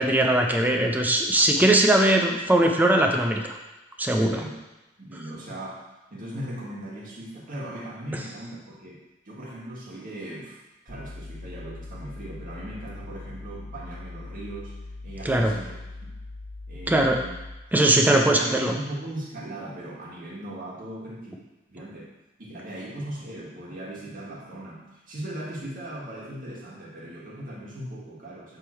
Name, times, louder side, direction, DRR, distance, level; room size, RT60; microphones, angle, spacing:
voice 1, 0.0-3.4 4.0-4.3 15.2-15.5 16.9-17.2 17.7-18.7, right 1 dB, 10° right, 2 dB, 0.5 m, -20 dB
voice 2, 4.1-4.6 5.0-10.6 10.8-14.7 15.0-15.7 16.0-16.2 16.7-17.3 17.7-21.3 21.7-22.1 22.4-28.6, right 1 dB, 50° right, -5 dB, 1.6 m, -38 dB
sound 1, 10.9-17.7, left 2 dB, 45° left, 1.5 m, -40 dB
6.2 x 3.6 x 4.4 m, 1.0 s
head